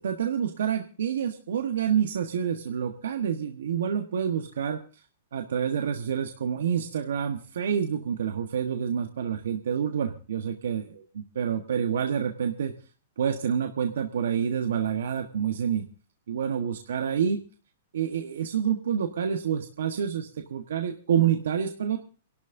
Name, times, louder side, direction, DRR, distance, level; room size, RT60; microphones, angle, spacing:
voice 1, 0.0-5.0 5.3-10.8 11.4-12.7 13.2-15.9 16.3-17.4 17.9-22.0, right 8 dB, 80° right, 5 dB, 1.3 m, -28 dB
29.0 x 12.0 x 2.7 m, 0.36 s
hypercardioid pair, 140°, 0 cm